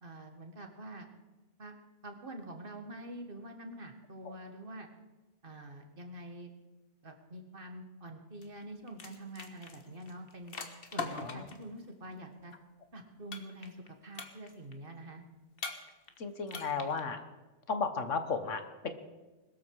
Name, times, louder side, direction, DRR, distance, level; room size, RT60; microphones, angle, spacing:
voice 1, 0.0-1.1 1.6-1.8 2.0-4.9 5.4-6.5 7.0-10.6 10.9-12.5 12.9-13.8 14.0-15.2, right 1 dB, 50° right, 4 dB, 2.0 m, -46 dB
sound 1, 8.4-8.6 8.9-11.6 13.3-13.9 14.1-14.7 15.6-16.2 16.5-17.0, left 4 dB, 50° left, 1.6 m, -41 dB
voice 2, 16.2-17.2 17.7-18.9, left 4 dB, 90° left, 9 dB, 1.7 m, -34 dB
21.0 x 13.5 x 4.9 m, 1.2 s
omnidirectional pair, 1.2 m